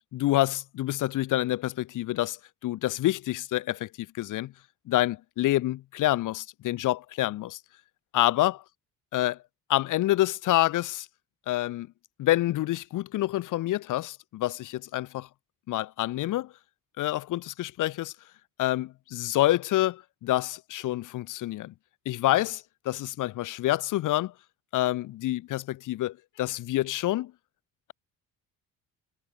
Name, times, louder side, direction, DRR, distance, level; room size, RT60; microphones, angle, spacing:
voice 1, 0.1-2.4 2.6-4.5 4.9-7.6 8.1-8.6 9.1-9.4 9.7-11.1 11.5-11.9 12.2-15.3 15.7-16.5 17.0-18.1 18.6-21.7 22.1-24.3 24.7-27.3, left 15 dB, 75° left, 7.5 m, -27 dB
cardioid pair, 150°, 31 cm